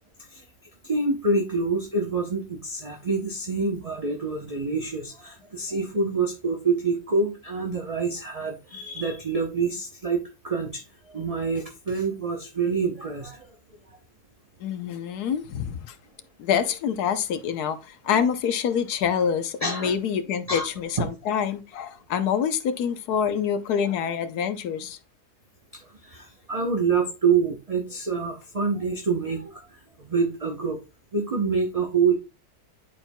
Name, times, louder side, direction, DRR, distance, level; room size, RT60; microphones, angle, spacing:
voice 1, 0.8-13.6 18.1-18.2 19.6-19.9 20.5-20.7 21.0-21.1 25.7-30.8 31.1-32.1, right 4 dB, 30° right, 0.7 m, -27 dB
voice 2, 14.6-16.0 16.4-25.0, left 7 dB, 75° left, 1.3 m, -26 dB
10.5 x 4.5 x 2.2 m
omnidirectional pair, 1.7 m